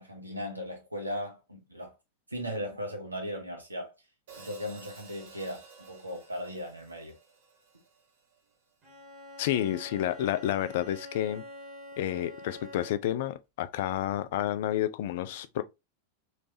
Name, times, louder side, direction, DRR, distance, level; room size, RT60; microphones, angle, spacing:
voice 1, 0.0-1.9 2.3-3.9 4.4-7.2, equal, 85° right, 1.0 m, -37 dB
Hi-hat, 4.3-8.6, right 5 dB, 55° right, 1.2 m, -53 dB
Bowed string instrument, 8.8-13.2, equal, 35° right, 1.9 m, -46 dB
voice 2, 9.4-11.4 12.0-15.6, left 12 dB, 55° left, 0.3 m, -30 dB
3.2 x 3.1 x 2.7 m
figure-of-eight pair, 90°, 0 cm